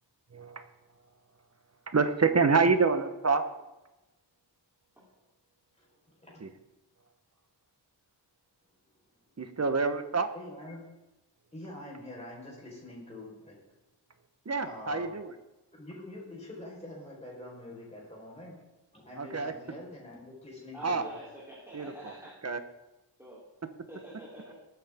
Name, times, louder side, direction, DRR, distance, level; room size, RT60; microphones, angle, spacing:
voice 1, 0.3-0.7 1.9-3.4 6.4-6.5 9.4-10.3 14.5-15.3 19.2-19.5 20.8-21.0 21.7-22.1 22.4-22.6, right 4 dB, 35° right, 9 dB, 1.1 m, -27 dB
voice 2, 5.8-6.4 10.3-10.8 11.5-13.6 14.6-15.1 15.8-18.6 18.9-21.1, left 1 dB, 15° left, -4 dB, 4.5 m, -45 dB
voice 3, 20.7-22.4 23.2-23.4 23.9-24.5, equal, 5° right, -7 dB, 3.4 m, -46 dB
20.5 x 9.5 x 3.6 m, 1.0 s
wide cardioid pair, 115°, 44 cm